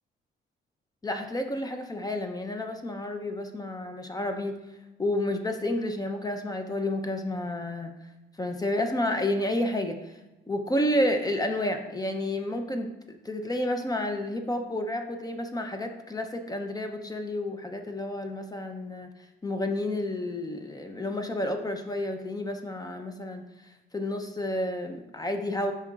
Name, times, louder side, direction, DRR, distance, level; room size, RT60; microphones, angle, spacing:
voice 1, 1.0-4.6 5.0-7.9 8.4-10.2 10.5-19.1 19.4-23.4 23.9-25.7, left 1 dB, 20° left, 5 dB, 0.6 m, -30 dB
8.3 x 5.6 x 2.4 m, 1.1 s
cardioid pair, 90°, 20 cm